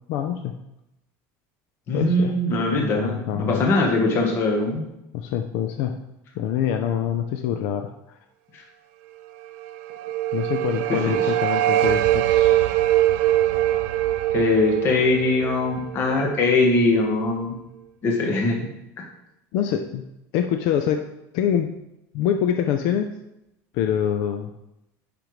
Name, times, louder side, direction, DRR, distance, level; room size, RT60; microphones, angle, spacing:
voice 1, 0.1-0.5 1.9-2.3 2.7-3.6 5.1-6.0 6.3-8.2 10.3-12.7 19.5-20.0 20.3-21.7 22.1-23.1 23.7-24.5, left 9 dB, 60° left, 6 dB, 0.5 m, -25 dB
voice 2, 1.9-4.8 8.5-8.6 11.1-11.2 14.3-17.6 18.0-18.6, left 2 dB, 35° left, 1 dB, 1.1 m, -21 dB
sound 1, 9.6-16.6, right 13 dB, 80° right, 0.4 m, -22 dB
10.5 x 5.1 x 3.1 m, 0.87 s
cardioid pair, 170°, 7 cm